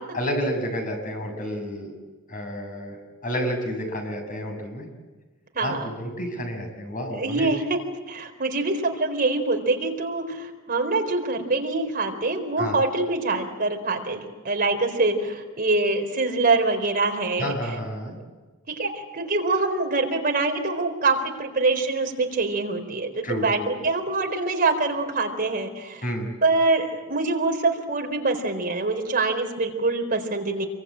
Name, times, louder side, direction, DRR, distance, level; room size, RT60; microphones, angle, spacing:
voice 1, 0.1-1.9 2.3-3.0 3.2-4.9 5.6-7.5 12.6-12.8 17.4-18.1 23.2-23.9 26.0-26.3, equal, 40° left, 3 dB, 7.3 m, -30 dB
voice 2, 7.2-7.8 8.1-17.5 18.8-26.0 26.4-30.7, right 3 dB, 45° right, 3 dB, 4.3 m, -24 dB
27.5 x 24.0 x 8.9 m, 1.2 s
head